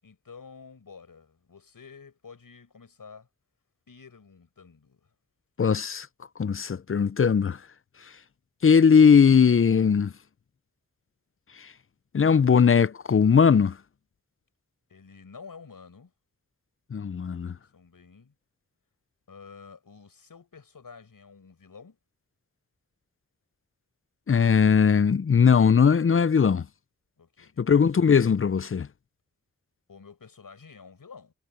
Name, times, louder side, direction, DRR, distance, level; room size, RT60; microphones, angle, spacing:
voice 1, 0.0-3.3 3.9-5.1 14.9-16.1 17.7-18.3 19.3-22.0 27.2-27.6 29.9-31.3, left 5 dB, 85° left, 6.3 m, -49 dB
voice 2, 5.6-6.1 6.4-7.6 8.6-10.1 11.6-11.7 12.1-13.8 16.9-17.6 24.3-26.7 27.6-28.9, left 6 dB, 40° left, 0.5 m, -19 dB
cardioid pair, 45°, 33 cm